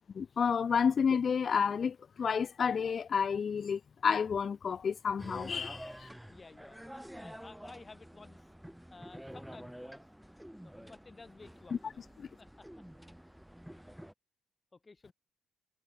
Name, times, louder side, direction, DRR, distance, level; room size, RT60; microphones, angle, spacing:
voice 1, 0.2-6.1 12.2-12.3, left 6 dB, 45° left, 0.4 m, -30 dB
sound 1, 5.2-14.1, equal, 5° right, 2.6 m, -49 dB
voice 2, 6.2-8.5 8.9-10.1 10.6-12.0 12.4-12.7 13.2-13.3 13.6-13.7 14.7-15.1, left 3 dB, 25° left, 2.9 m, -54 dB
cardioid pair, 90°, 0 cm